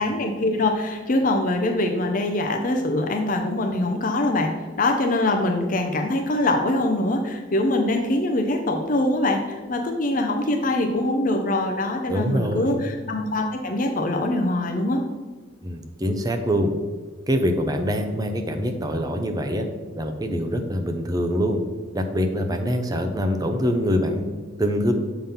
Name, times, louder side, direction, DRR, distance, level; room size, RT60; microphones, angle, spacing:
voice 1, 0.0-4.5 4.8-15.0, left 2 dB, 45° left, 4 dB, 0.6 m, -23 dB
voice 2, 12.1-12.7 15.6-16.7 17.3-19.7 20.0-21.6 21.9-24.9, equal, 20° right, 5 dB, 0.6 m, -24 dB
7.0 x 3.8 x 5.6 m, 1.4 s
head